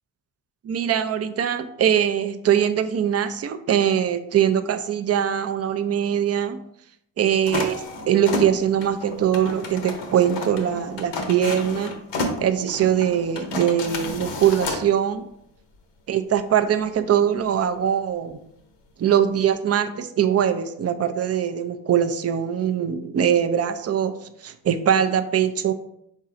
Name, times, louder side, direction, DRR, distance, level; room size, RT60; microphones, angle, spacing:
voice 1, 0.6-6.6 7.2-7.8 8.1-12.0 12.4-15.3 16.1-18.4 19.0-25.7, right 9 dB, 35° right, 9 dB, 0.5 m, -22 dB
sound 1, 7.5-14.8, left 2 dB, 75° left, 0.9 m, -31 dB
5.4 x 3.9 x 2.5 m, 0.77 s
supercardioid pair, 55°, 43 cm